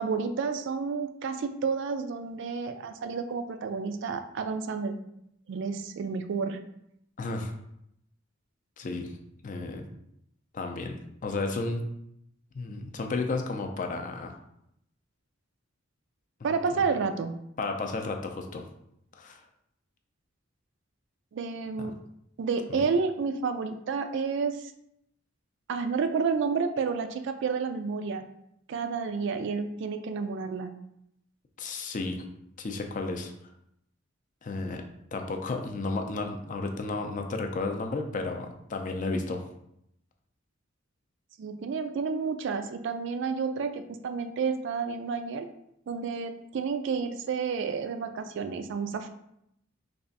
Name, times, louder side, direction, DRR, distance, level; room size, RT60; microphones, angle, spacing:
voice 1, 0.0-5.0 5.5-6.6 16.4-17.3 21.3-22.0 22.4-24.7 25.7-28.3 28.7-30.7 41.4-45.5 45.9-49.1, right 5 dB, 65° right, 8 dB, 0.3 m, -30 dB
voice 2, 7.2-7.5 8.8-9.2 9.4-9.9 10.5-11.8 12.5-14.3 16.4-16.5 17.6-18.7 19.2-19.4 21.8-21.9 22.7-22.8 31.6-32.2 32.6-33.3 34.4-34.8 35.1-39.4, left 3 dB, 40° left, 4 dB, 0.4 m, -33 dB
3.3 x 2.4 x 3.9 m, 0.77 s
head